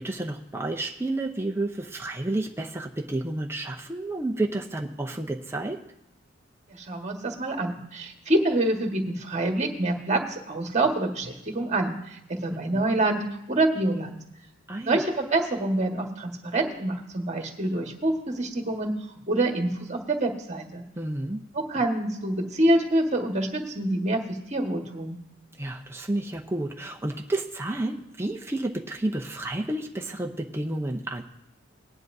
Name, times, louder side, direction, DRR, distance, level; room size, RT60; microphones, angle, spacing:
voice 1, 0.0-5.8 12.5-12.8 14.7-15.0 21.0-21.5 25.6-31.2, right 2 dB, 10° right, 1 dB, 0.7 m, -31 dB
voice 2, 6.7-14.2 14.9-18.9 19.3-20.8 21.5-25.2, right 1 dB, 35° right, 3 dB, 1.5 m, -26 dB
18.5 x 10.0 x 2.7 m, 0.80 s
head